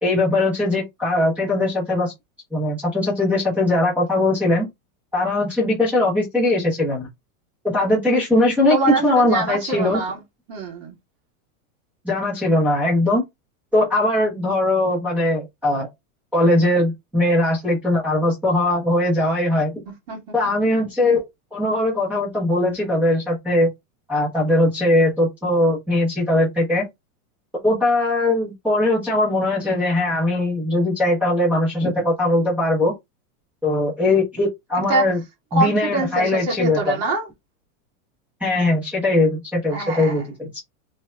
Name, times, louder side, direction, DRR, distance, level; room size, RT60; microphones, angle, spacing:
voice 1, 0.0-2.1 2.5-4.7 5.1-7.1 7.6-8.8 9.0-10.0 12.0-13.2 13.7-15.9 16.3-19.8 20.3-21.2 21.5-23.7 24.1-26.8 27.6-32.9 33.6-35.2 35.5-36.9 38.4-40.5, left 1 dB, 5° right, 1.3 m, -20 dB
voice 2, 8.7-10.2 10.5-10.9 20.1-20.5 34.9-35.0 35.5-37.3 39.7-40.2, right 3 dB, 40° right, 2.9 m, -24 dB
4.6 x 4.1 x 2.5 m
supercardioid pair, 180°, 42 cm